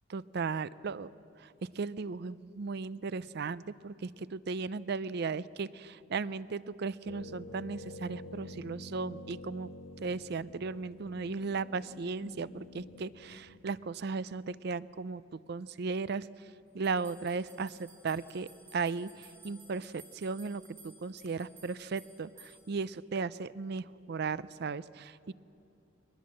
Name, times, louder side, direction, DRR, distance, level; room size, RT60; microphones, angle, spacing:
voice 1, 0.1-1.1 1.7-9.7 10.0-16.5 16.7-25.3, right 4 dB, 55° right, 17 dB, 0.5 m, -36 dB
sound 1, 7.1-13.7, left 1 dB, 85° left, 1.6 m, -48 dB
sound 2, 16.8-22.9, right 2 dB, 85° right, 8.0 m, -56 dB
22.5 x 19.5 x 7.6 m, 2.6 s
head